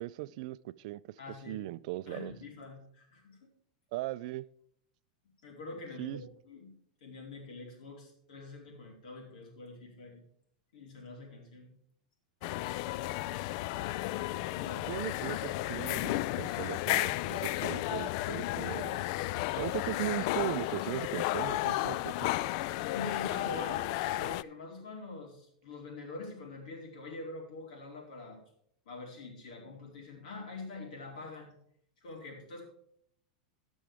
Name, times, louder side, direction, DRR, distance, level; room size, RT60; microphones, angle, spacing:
voice 1, 0.0-1.0 1.5-2.3 3.9-4.5 6.0-6.2 14.9-19.1 19.6-22.3, right 16 dB, 60° right, 0.4 m, -38 dB
voice 2, 1.2-1.7 2.1-3.5 5.4-6.7 7.0-10.2 10.7-11.7 14.1-15.1 19.5-20.2 22.9-28.4 28.9-31.5 32.0-32.6, left 3 dB, 75° left, 4.3 m, -45 dB
sound 1, 12.4-24.4, left 16 dB, 50° left, 0.3 m, -33 dB
17.0 x 6.2 x 3.5 m
supercardioid pair, 135°, 4 cm